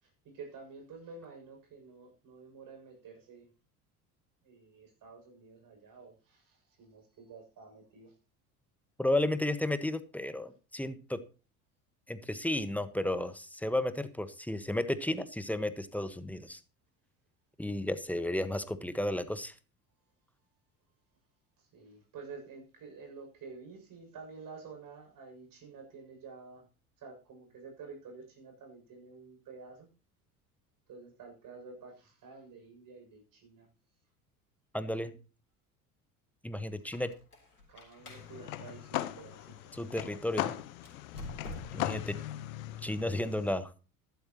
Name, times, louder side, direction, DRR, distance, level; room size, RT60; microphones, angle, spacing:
voice 1, 0.0-3.5 4.4-8.2 21.6-26.7 27.0-29.9 30.9-33.7 36.6-37.1 37.7-39.7 41.8-42.1, right 4 dB, 45° right, 3 dB, 6.9 m, -50 dB
voice 2, 9.0-11.2 12.1-16.6 17.6-19.5 34.7-35.2 36.4-37.1 39.7-40.5 41.7-42.2 42.8-43.7, left 1 dB, 5° left, 12 dB, 1.3 m, -33 dB
Squeak, 36.8-39.9 40.7-42.0, left 2 dB, 90° left, 3.8 m, -49 dB
sound 1, 38.0-43.5, left 14 dB, 70° left, 1.0 m, -39 dB
14.0 x 12.0 x 3.0 m, 0.33 s
figure-of-eight pair, 65°, 44 cm